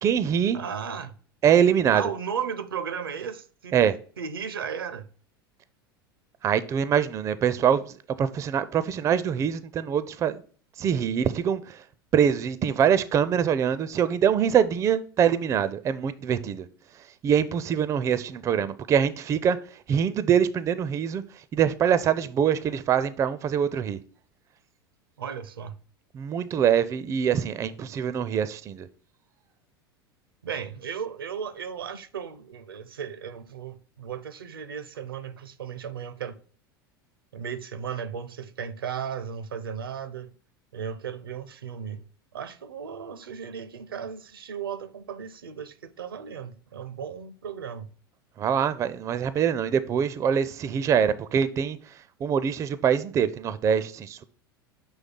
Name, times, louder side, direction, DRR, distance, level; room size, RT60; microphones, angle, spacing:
voice 1, 0.0-0.6 1.4-2.0 3.7-3.9 6.4-10.4 10.8-11.8 12.1-16.7 17.2-19.6 19.9-21.2 21.5-24.0 26.1-28.9 48.4-51.8 52.2-54.2, right 8 dB, 25° right, 0.4 m, -24 dB
voice 2, 0.5-1.1 1.9-3.7 4.2-5.1 25.2-25.8 30.4-36.4 37.3-40.3 40.7-42.0 42.3-47.9, right 7 dB, 70° right, 0.6 m, -35 dB
6.3 x 3.2 x 5.3 m
figure-of-eight pair, 80°, 12 cm